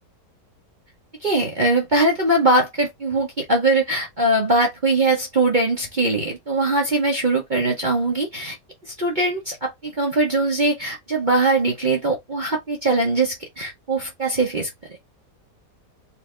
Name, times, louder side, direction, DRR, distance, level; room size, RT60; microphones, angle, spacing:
voice 1, 1.2-8.6 8.8-14.7, right 2 dB, 40° right, 0.7 m, -21 dB
4.2 x 2.7 x 3.2 m
omnidirectional pair, 1.9 m